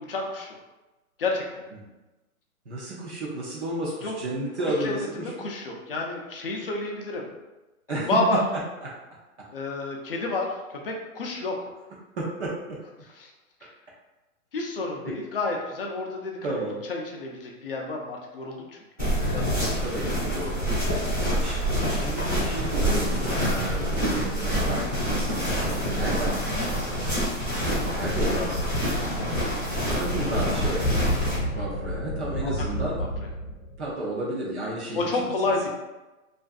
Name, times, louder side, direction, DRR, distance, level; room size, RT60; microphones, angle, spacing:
voice 1, 0.1-0.5 1.2-1.6 4.0-4.1 4.8-7.3 7.9-8.4 9.5-11.5 13.1-13.3 14.5-16.6 16.9-18.6 19.3-19.5 20.1-20.6 23.2-23.3 28.2-28.5 30.9-31.1 31.6-31.7 32.4-32.5 32.8-33.1 34.9-35.7, left 3 dB, 45° left, 0 dB, 0.4 m, -30 dB
voice 2, 2.7-5.0 5.3-5.5 7.9-8.1 8.8-8.9 12.2-12.8 15.1-15.2 16.4-16.8 19.8-20.4 21.4-21.6 21.9-26.9 27.9-28.6 29.9-30.9 31.5-33.0 33.8-35.7, right 2 dB, 50° right, -5 dB, 0.6 m, -32 dB
sound 1, 19.0-31.4, equal, 10° right, 0.5 m, -26 dB
sound 2, 27.7-33.9, equal, 80° left, 0.6 m, -31 dB
2.5 x 2.4 x 2.3 m, 1.1 s
hypercardioid pair, 165°, 42 cm